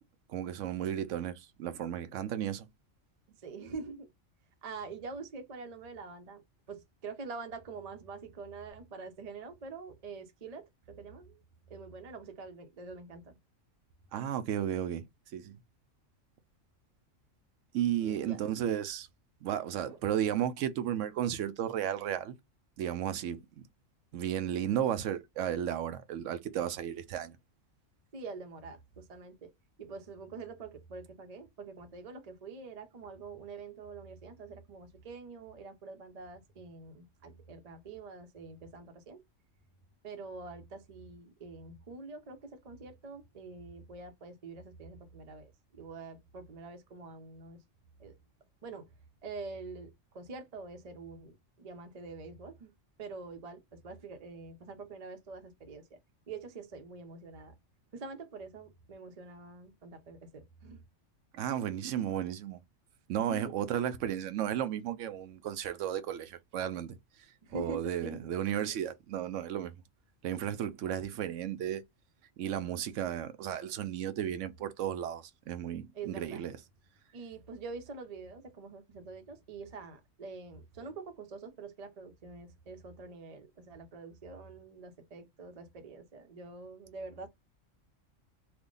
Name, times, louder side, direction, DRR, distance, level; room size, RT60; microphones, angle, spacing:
voice 1, 0.3-2.7 14.1-15.0 15.3-15.6 17.7-19.1 19.4-22.4 22.8-23.4 24.1-27.4 61.3-62.6 63.1-67.0 67.5-69.7 70.2-71.8 72.4-76.6, right 10 dB, 75° right, 0.9 m, -34 dB
voice 2, 3.4-4.1 4.6-6.4 6.7-11.4 11.7-13.4 18.0-18.4 19.9-20.0 28.1-29.5 29.8-39.2 40.0-47.6 48.0-48.1 48.6-48.9 49.2-52.7 53.0-56.0 56.3-57.5 57.9-60.8 63.2-63.7 67.4-68.2 75.9-76.4 77.1-87.3, right 4 dB, 40° right, 0.6 m, -45 dB
3.4 x 2.2 x 3.8 m
omnidirectional pair, 1.3 m